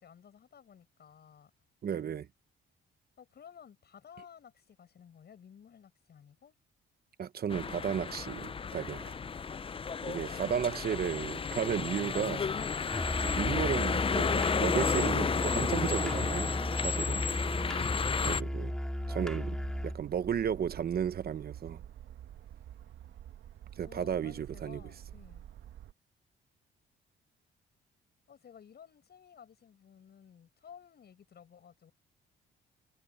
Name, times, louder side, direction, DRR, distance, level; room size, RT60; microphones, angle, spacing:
voice 1, 0.0-1.5 3.2-6.5 10.0-10.9 23.8-25.5 28.3-31.9, left 8 dB, 55° left, 7.9 m, -55 dB
voice 2, 1.8-2.3 7.2-9.2 10.1-12.5 13.2-16.5 16.8-17.3 18.2-18.7 19.1-19.6 19.8-21.8 23.8-24.8, right 8 dB, 50° right, 1.0 m, -34 dB
sound 1, 7.5-18.4, left 5 dB, 25° left, 0.6 m, -32 dB
Musical instrument, 12.9-20.0, equal, 5° left, 2.7 m, -35 dB
sound 2, 19.0-25.9, right 11 dB, 75° right, 1.6 m, -49 dB
cardioid pair, 90°, 20 cm